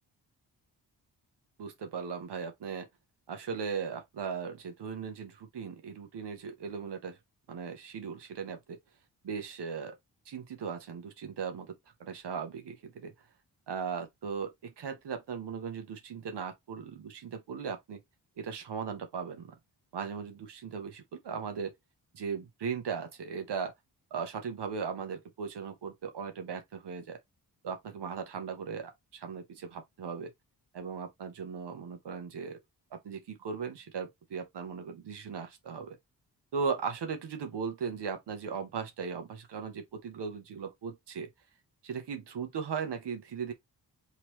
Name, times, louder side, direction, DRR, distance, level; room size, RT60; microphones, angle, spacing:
voice 1, 1.6-2.9 3.3-7.2 7.5-8.8 9.2-10.0 10.3-11.7 12.0-13.1 13.7-18.0 18.4-19.5 19.9-21.7 22.1-23.7 24.1-27.2 27.6-30.3 30.7-32.6 32.9-36.0 36.5-41.3 41.8-43.5, right 6 dB, 70° right, 0.9 m, -38 dB
2.9 x 2.9 x 3.0 m
cardioid pair, 55°, 42 cm